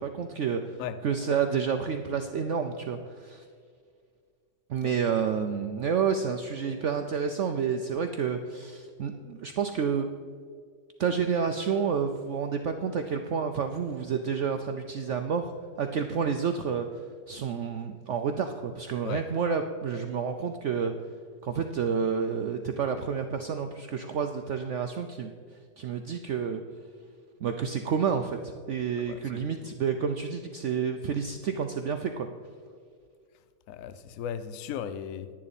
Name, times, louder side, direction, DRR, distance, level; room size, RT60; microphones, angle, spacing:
voice 1, 0.0-3.4 4.7-10.1 11.0-15.5 15.8-16.9 17.3-20.9 21.4-25.3 25.8-26.6 27.4-32.3, right 6 dB, 85° right, 6 dB, 0.6 m, -29 dB
voice 2, 29.1-29.5 33.7-35.3, left 9 dB, 65° left, 12 dB, 0.9 m, -36 dB
10.5 x 10.5 x 4.1 m, 2.1 s
omnidirectional pair, 1.9 m